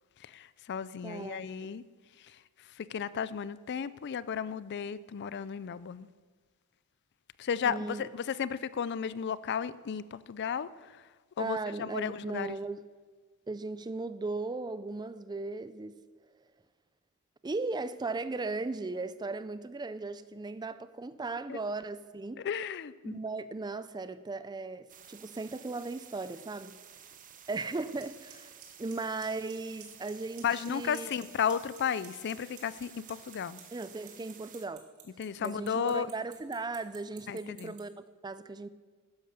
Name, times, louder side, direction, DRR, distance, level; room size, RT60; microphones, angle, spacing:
voice 1, 0.2-1.8 2.2-2.4 2.7-6.1 7.4-11.0 11.4-12.6 21.5-21.6 22.4-23.2 30.4-33.6 35.2-36.1 37.3-37.7, left 7 dB, 50° left, 0.4 m, -34 dB
voice 2, 1.0-1.7 7.6-8.1 11.4-12.8 13.5-16.0 17.4-22.4 23.0-26.8 27.5-31.1 33.7-34.9 35.4-38.7, right 3 dB, 20° right, 0.4 m, -37 dB
sound 1, 24.9-34.7, right 8 dB, 40° right, 0.9 m, -53 dB
Clock, 28.0-28.1 28.3-28.6 28.9-29.5 29.8-30.1 30.4-31.2 31.5-37.8, right 14 dB, 85° right, 2.4 m, -51 dB
12.0 x 10.5 x 6.6 m
head